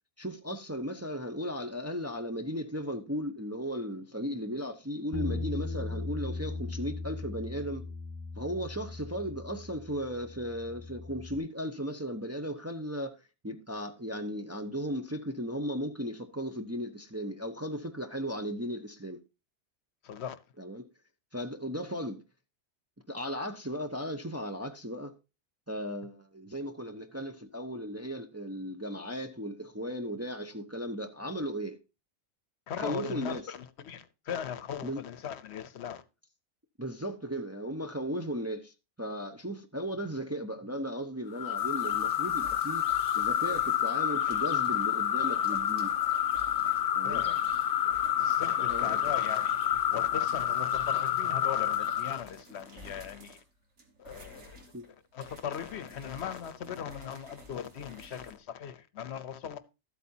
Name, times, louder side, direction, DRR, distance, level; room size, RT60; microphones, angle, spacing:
voice 1, 0.2-7.8 8.4-13.1 13.4-19.2 20.6-20.8 21.3-22.2 23.1-25.1 25.7-31.8 32.8-33.5 34.8-35.0 36.8-42.9 43.1-45.9 47.0-47.2 47.8-48.0 48.6-49.1 54.7-54.8, equal, 15° right, 0.6 m, -36 dB
Bass guitar, 5.1-11.4, left 3 dB, 25° left, 0.3 m, -38 dB
voice 2, 20.0-20.4 32.7-36.0 47.0-47.4 48.2-49.6 49.9-53.4 54.0-59.6, left 8 dB, 75° left, 1.0 m, -39 dB
sound 1, 41.4-52.2, left 10 dB, 55° left, 0.8 m, -28 dB
sound 2, 41.6-58.4, equal, 90° right, 2.0 m, -53 dB
13.0 x 8.2 x 2.7 m
omnidirectional pair, 1.2 m